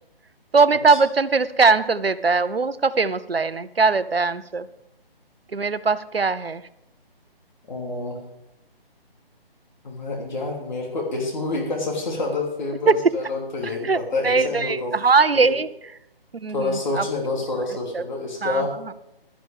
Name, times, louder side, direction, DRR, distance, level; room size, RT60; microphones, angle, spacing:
voice 1, 0.5-4.7 5.5-6.6 12.9-13.0 13.8-14.0 14.2-15.7 16.3-17.0 17.9-18.0 18.4-18.7, right 4 dB, 75° right, 16 dB, 0.8 m, -20 dB
voice 2, 7.7-8.2 9.8-15.0 16.5-18.7, left 3 dB, 50° left, -2 dB, 3.2 m, -28 dB
16.5 x 12.5 x 3.6 m, 0.84 s
figure-of-eight pair, 145°, 30 cm